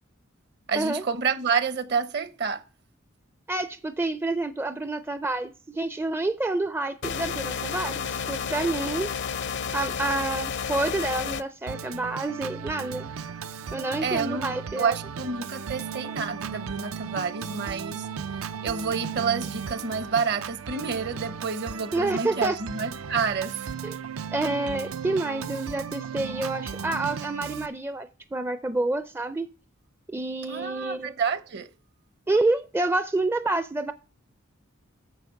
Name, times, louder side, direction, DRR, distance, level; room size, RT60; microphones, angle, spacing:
voice 1, 0.7-2.6 14.0-18.1 18.6-23.6 30.5-31.7, right 5 dB, 55° right, 0.9 m, -29 dB
voice 2, 3.5-9.1 9.7-13.1 13.7-15.0 21.9-22.5 23.8-24.0 24.3-29.5 30.1-31.1 32.3-33.9, right 2 dB, 10° right, 0.4 m, -28 dB
sound 1, 7.0-11.4, left 7 dB, 60° left, 0.6 m, -31 dB
Organ, 11.7-27.7, right 6 dB, 80° right, 0.5 m, -36 dB
9.4 x 7.0 x 5.8 m
head